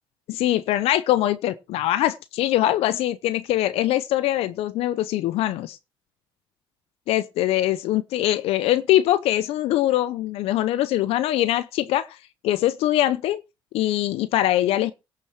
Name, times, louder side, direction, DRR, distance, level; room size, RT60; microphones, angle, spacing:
voice 1, 0.3-5.8 7.1-12.2 12.4-13.4 13.7-14.9, left 14 dB, 90° left, 0.7 m, -22 dB
16.5 x 6.8 x 4.4 m
cardioid pair, 75°, 10 cm